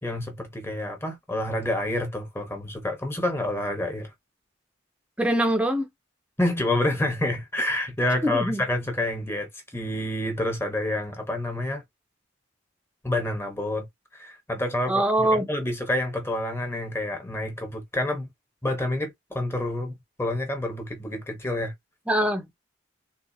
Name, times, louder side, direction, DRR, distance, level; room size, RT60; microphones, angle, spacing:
voice 1, 0.0-4.1 6.4-11.8 13.0-13.9 14.1-18.3 18.6-21.7, left 1 dB, 15° left, 1.0 m, -28 dB
voice 2, 5.2-5.9 8.2-8.6 14.9-15.5 22.1-22.5, right 1 dB, 5° right, 0.6 m, -23 dB
3.7 x 2.4 x 2.7 m
head